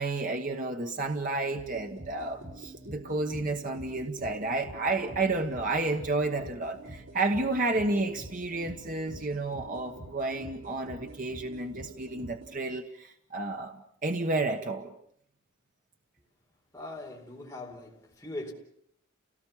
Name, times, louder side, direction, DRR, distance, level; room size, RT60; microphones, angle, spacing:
voice 1, 0.0-14.9, right 2 dB, 40° right, 1.2 m, -31 dB
sound 1, 1.6-12.6, right 1 dB, 70° right, 5.9 m, -46 dB
voice 2, 16.7-18.5, left 2 dB, 15° left, 4.2 m, -41 dB
29.5 x 18.5 x 7.1 m
head